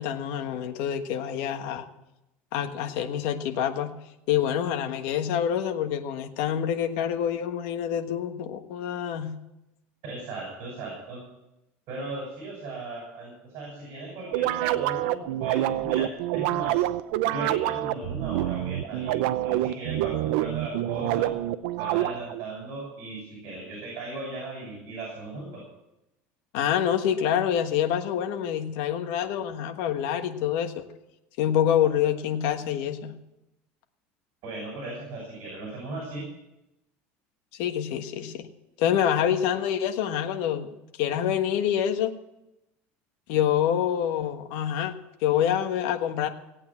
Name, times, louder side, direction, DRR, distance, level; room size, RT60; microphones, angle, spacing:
voice 1, 0.0-1.9 2.5-3.9 4.3-9.3 26.5-30.9 31.4-33.1 37.5-38.4 38.8-42.1 43.3-44.9 45.2-46.3, left 9 dB, 70° left, 6 dB, 1.4 m, -26 dB
voice 2, 10.0-11.2 11.9-16.8 17.3-21.3 21.8-25.6 34.4-36.3, right 2 dB, 55° right, -1 dB, 6.3 m, -37 dB
sound 1, 14.3-22.4, right 14 dB, 80° right, 0.6 m, -27 dB
17.0 x 8.8 x 7.3 m, 0.91 s
cardioid pair, 155°, 5 cm